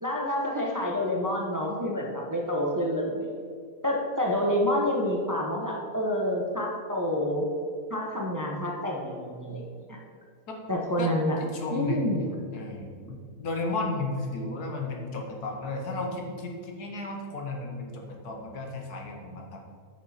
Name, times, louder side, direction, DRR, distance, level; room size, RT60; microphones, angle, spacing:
voice 1, 0.0-3.3 3.8-7.5 7.9-10.0 10.7-11.4 11.7-12.3, left 1 dB, 15° right, -1 dB, 0.8 m, -28 dB
voice 2, 11.4-12.2 12.5-19.6, left 2 dB, 85° left, 1 dB, 1.8 m, -34 dB
9.5 x 6.5 x 4.3 m, 2.2 s
omnidirectional pair, 1.6 m